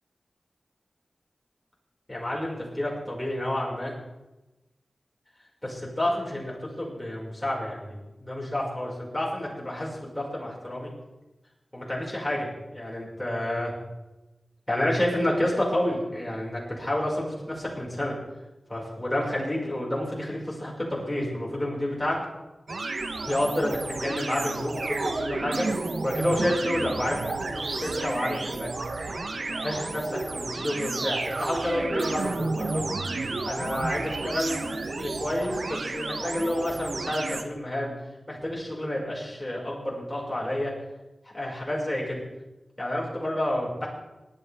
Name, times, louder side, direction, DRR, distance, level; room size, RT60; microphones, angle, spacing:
voice 1, 2.1-3.9 5.6-10.9 11.7-13.7 14.7-18.2 18.7-22.2 23.3-25.7 26.0-28.7 29.4-32.8 33.4-37.9 38.3-40.7 41.3-42.2 42.8-43.9, left 1 dB, 15° left, -4 dB, 5.6 m, -29 dB
sound 1, 22.7-37.4, right 3 dB, 70° right, 1.1 m, -31 dB
18.5 x 12.0 x 3.6 m, 1.0 s
wide cardioid pair, 65°, 0 cm